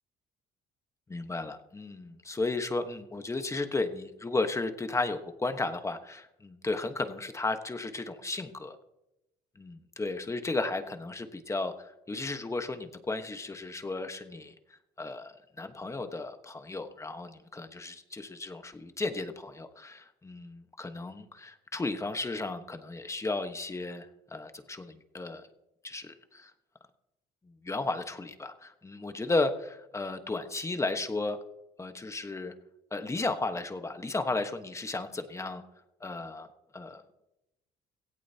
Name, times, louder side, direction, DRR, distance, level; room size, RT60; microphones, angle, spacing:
voice 1, 1.1-8.8 9.6-14.5 15.0-25.5 25.8-26.5 27.5-31.4 31.8-32.5 32.9-35.6 36.0-36.5 36.7-37.0, left 3 dB, 15° left, 8 dB, 1.2 m, -34 dB
17.0 x 16.0 x 2.9 m, 0.91 s
cardioid pair, 110°, 17 cm